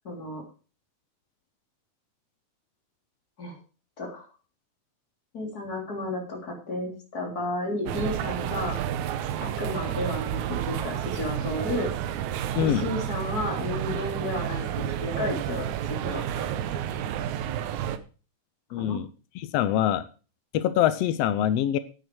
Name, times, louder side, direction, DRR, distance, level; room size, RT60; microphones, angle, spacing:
voice 1, 0.0-0.4 3.4-3.6 4.0-4.3 5.3-8.8 9.4-11.9 12.6-16.6 18.7-19.0, left 1 dB, 30° left, 0 dB, 3.6 m, -32 dB
sound 1, 7.9-18.0, right 10 dB, 75° right, 2.1 m, -30 dB
voice 2, 12.5-12.9 18.7-19.1 19.3-20.0 20.5-21.8, left 11 dB, 85° left, 14 dB, 1.4 m, -24 dB
11.0 x 9.1 x 4.6 m, 0.34 s
omnidirectional pair, 3.6 m